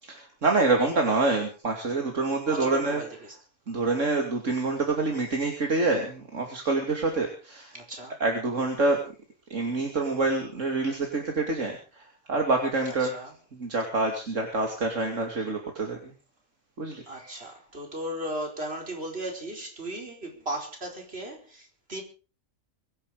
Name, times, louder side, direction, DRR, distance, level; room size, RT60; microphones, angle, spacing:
voice 1, 0.0-3.0 3.7-7.7 8.2-9.0 9.5-13.1 13.5-16.1 16.8-17.0, right 3 dB, 65° right, 3.1 m, -26 dB
voice 2, 2.5-3.3 7.7-8.2 8.7-9.0 12.9-13.3 17.1-22.0, right 1 dB, 45° right, 5.0 m, -36 dB
23.5 x 11.0 x 5.0 m
omnidirectional pair, 1.4 m